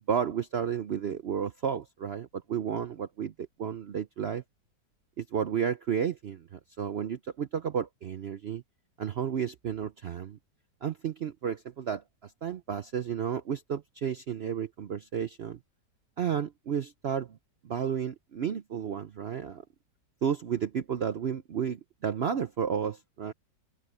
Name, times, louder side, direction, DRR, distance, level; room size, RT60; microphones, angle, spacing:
voice 1, 0.1-4.4 5.2-8.6 9.0-10.4 10.8-12.0 12.4-15.6 16.2-17.3 17.6-19.6 20.2-23.3, right 8 dB, 70° right, 0.6 m, -32 dB
open air
omnidirectional pair, 1.9 m